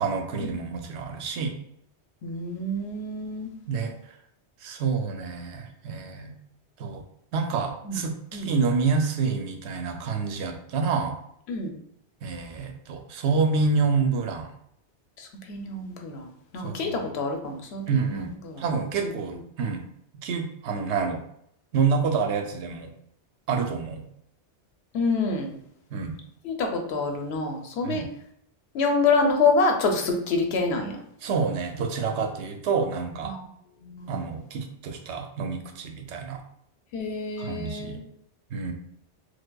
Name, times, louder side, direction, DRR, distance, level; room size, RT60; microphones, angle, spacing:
voice 1, 0.0-1.5 3.7-3.9 4.6-6.3 6.8-7.0 7.3-11.2 12.2-14.5 16.6-17.1 17.9-18.3 18.6-19.8 20.2-21.2 21.7-22.9 23.5-24.1 25.9-26.2 27.8-28.1 31.2-33.3 34.1-36.4 37.4-38.0 38.5-38.7, right 5 dB, 75° right, 5 dB, 0.8 m, -28 dB
voice 2, 2.2-3.5 7.9-8.0 8.3-8.5 11.5-11.8 15.2-16.3 16.5-18.6 19.0-19.1 24.9-25.6 26.4-28.1 28.7-31.0 33.2-33.5 33.8-34.3 36.9-38.0, left 3 dB, 70° left, 3 dB, 0.9 m, -27 dB
4.7 x 2.2 x 2.2 m, 0.72 s
omnidirectional pair, 1.2 m